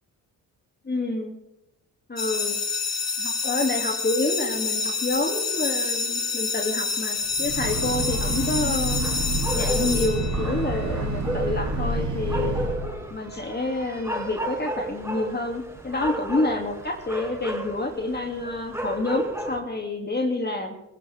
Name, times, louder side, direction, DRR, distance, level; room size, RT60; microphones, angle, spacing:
voice 1, 0.8-1.3 2.1-2.6 3.2-9.0 9.5-12.6 13.1-20.7, left 2 dB, 25° left, 3 dB, 2.8 m, -28 dB
sound 1, 2.2-10.8, left 4 dB, 40° left, 1.9 m, -28 dB
Breathing / Train, 7.2-13.0, right 2 dB, 50° right, 5.0 m, -28 dB
sound 2, 7.9-19.6, right 1 dB, 5° right, 7.8 m, -34 dB
21.0 x 16.0 x 3.6 m, 0.89 s
supercardioid pair, 55°, 38 cm